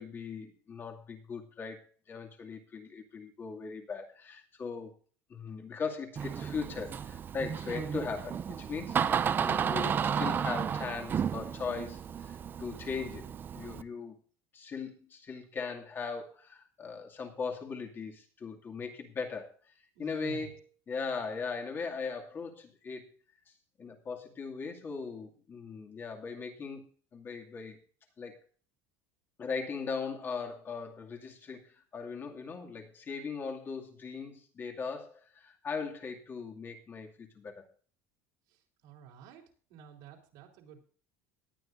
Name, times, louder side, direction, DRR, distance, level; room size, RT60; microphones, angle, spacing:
voice 1, 0.0-5.0 5.3-9.1 9.4-14.2 14.5-23.2 23.8-27.8 28.2-28.4 29.4-37.6, left 5 dB, 30° left, 3 dB, 2.4 m, -39 dB
Door, 6.2-13.8, right 7 dB, 30° right, 0.5 m, -33 dB
voice 2, 20.0-20.5 38.8-39.4 39.7-40.8, right 7 dB, 70° right, 0 dB, 3.5 m, -49 dB
19.0 x 9.4 x 2.6 m, 0.42 s
supercardioid pair, 130°, 7 cm